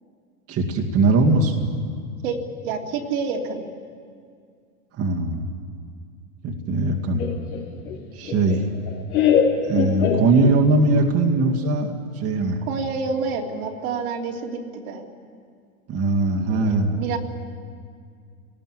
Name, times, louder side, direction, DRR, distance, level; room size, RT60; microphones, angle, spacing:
voice 1, 0.5-1.7 4.9-5.4 6.4-7.3 8.1-8.7 9.6-12.6 15.9-17.0, right 2 dB, 30° right, -1 dB, 2.3 m, -20 dB
voice 2, 2.6-3.6 12.7-15.0 16.5-17.2, right 5 dB, 65° right, 1 dB, 3.3 m, -28 dB
Laughter, 7.2-10.8, left 7 dB, 70° left, 4.8 m, -23 dB
26.5 x 19.0 x 7.6 m, 2.2 s
hypercardioid pair, 125°, 45 cm